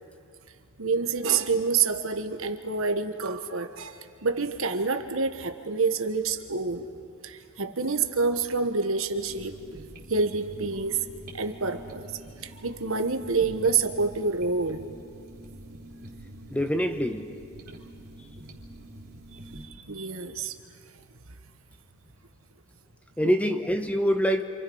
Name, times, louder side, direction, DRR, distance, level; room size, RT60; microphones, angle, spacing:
voice 1, 0.8-6.9 7.2-9.6 10.1-11.0 11.3-12.1 12.4-14.9 19.8-20.5 23.2-23.3, right 4 dB, 70° right, 8 dB, 1.4 m, -27 dB
sound 1, 9.1-19.7, right 1 dB, 50° right, 3.5 m, -46 dB
voice 2, 16.5-17.4 23.2-24.4, equal, 5° left, 7 dB, 1.0 m, -25 dB
29.0 x 27.5 x 5.6 m, 2.4 s
head